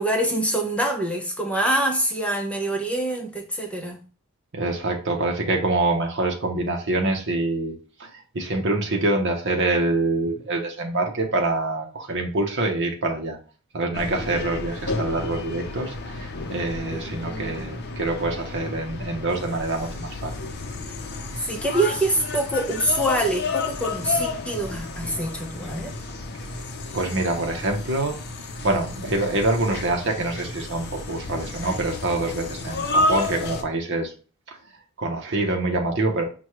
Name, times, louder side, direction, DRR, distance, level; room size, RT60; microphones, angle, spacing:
voice 1, 0.0-4.0 16.9-17.7 21.4-25.9, right 1 dB, 5° left, 0.7 m, -25 dB
voice 2, 4.5-7.7 8.0-13.4 13.7-20.5 26.9-28.2 28.6-34.1 34.5-34.6 35.0-36.2, right 2 dB, 55° right, 0.7 m, -25 dB
sound 1, 13.9-33.6, left 2 dB, 50° left, 0.6 m, -31 dB
6.0 x 2.2 x 3.0 m
head